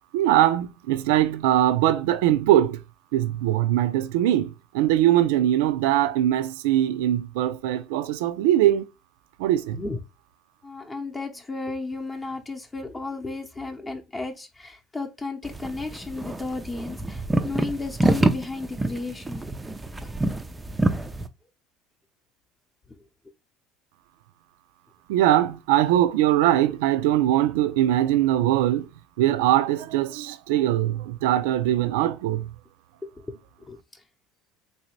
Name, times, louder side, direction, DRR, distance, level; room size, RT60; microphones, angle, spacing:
voice 1, 0.1-2.8 3.1-8.9 9.4-9.8 25.1-28.9 29.2-32.5, right 13 dB, 85° right, 0.3 m, -21 dB
voice 2, 10.6-19.5 20.0-20.1 33.6-33.8, left 3 dB, 20° left, 0.7 m, -34 dB
sound 1, 15.4-21.3, right 2 dB, 15° right, 0.4 m, -26 dB
3.3 x 2.7 x 3.0 m
supercardioid pair, 100°, 0 cm